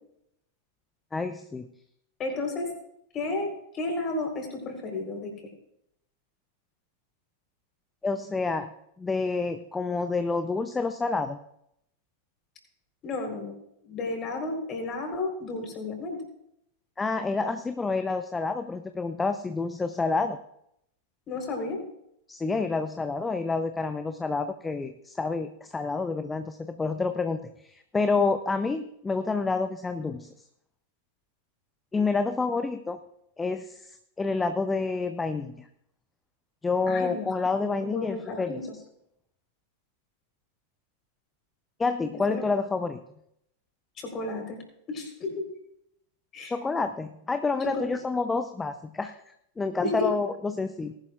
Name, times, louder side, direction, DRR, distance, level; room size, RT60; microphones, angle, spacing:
voice 1, 1.1-1.7 8.0-8.7 9.0-11.4 17.0-20.4 22.3-30.3 31.9-33.0 33.4-35.6 36.6-38.6 41.8-43.0 46.5-50.9, left 4 dB, 10° left, 9 dB, 0.6 m, -28 dB
voice 2, 2.2-2.7 3.1-5.3 13.0-13.6 13.8-16.2 21.3-21.8 36.9-37.3 37.6-38.8 42.3-42.4 44.0-44.6 44.9-45.5 46.3-46.5 47.6-48.0 49.8-50.1, left 2 dB, 30° left, 3 dB, 4.1 m, -32 dB
19.0 x 11.5 x 2.5 m, 0.75 s
figure-of-eight pair, 90°, 0 cm